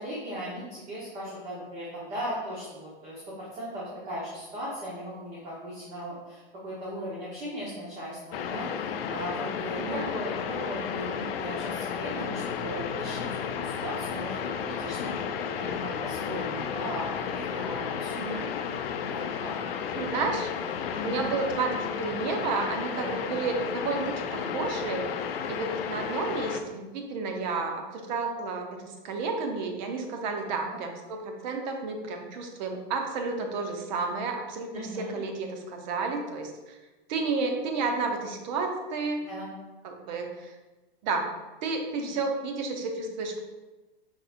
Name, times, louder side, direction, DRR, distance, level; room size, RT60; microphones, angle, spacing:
voice 1, 0.0-15.1 15.4-18.3 19.0-19.5 20.9-21.3 22.9-23.2 30.6-30.8 34.7-35.2 39.3-39.5 41.9-42.2, equal, 20° right, -7 dB, 1.2 m, -38 dB
sound 1, 8.3-26.6, left 7 dB, 75° left, 0.5 m, -33 dB
voice 2, 9.8-10.2 18.2-18.5 20.0-20.5 21.0-25.1 25.5-36.8 37.1-39.3 39.8-40.5 41.0-41.3 41.6-43.4, right 4 dB, 50° right, 3 dB, 0.8 m, -31 dB
5.3 x 3.8 x 2.6 m, 1.2 s
hypercardioid pair, 140°, 29 cm